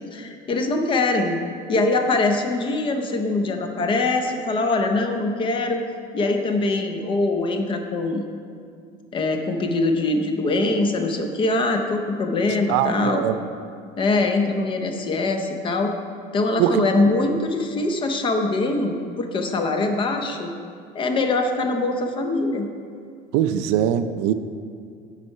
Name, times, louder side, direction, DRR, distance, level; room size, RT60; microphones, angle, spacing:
voice 1, 0.0-1.4 1.7-5.8 6.1-8.3 9.1-13.2 14.0-15.9 16.3-20.5 20.9-22.7, left 2 dB, 25° left, 5 dB, 0.6 m, -23 dB
voice 2, 12.7-13.4 16.6-17.1 23.3-24.3, right 10 dB, 80° right, 11 dB, 0.4 m, -22 dB
8.2 x 4.6 x 5.5 m, 2.3 s
cardioid pair, 160°, 18 cm